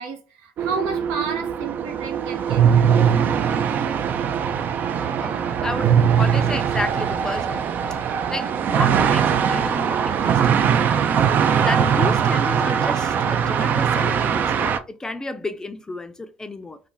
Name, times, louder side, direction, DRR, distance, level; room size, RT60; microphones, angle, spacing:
voice 1, 0.0-2.8 4.8-5.5, right 4 dB, 85° right, 0.7 m, -32 dB
sound 1, 0.6-14.8, right 7 dB, 50° right, 0.4 m, -21 dB
voice 2, 5.2-7.8 8.3-10.9 11.6-16.8, left 2 dB, 15° left, 0.4 m, -32 dB
2.5 x 2.2 x 3.8 m
supercardioid pair, 90°, 4 cm